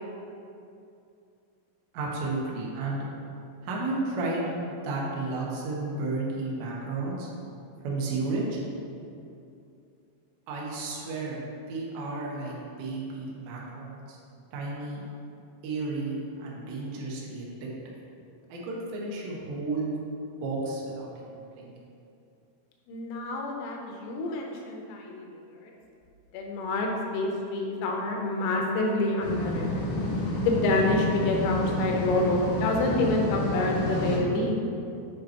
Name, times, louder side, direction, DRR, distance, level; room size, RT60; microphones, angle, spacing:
voice 1, 1.9-3.1 3.6-7.3 7.8-8.6 10.5-11.4 11.7-14.2 14.5-15.1 15.6-17.7 18.5-19.9 20.4-21.7, right 3 dB, 75° right, -4 dB, 2.8 m, -32 dB
voice 2, 22.9-25.3 25.6-25.7 26.3-29.9 30.4-34.6, left 2 dB, 85° left, 0 dB, 3.5 m, -27 dB
sound 1, 29.2-34.2, left 1 dB, 60° left, 3.4 m, -29 dB
9.0 x 5.1 x 2.9 m, 2.6 s
omnidirectional pair, 6.0 m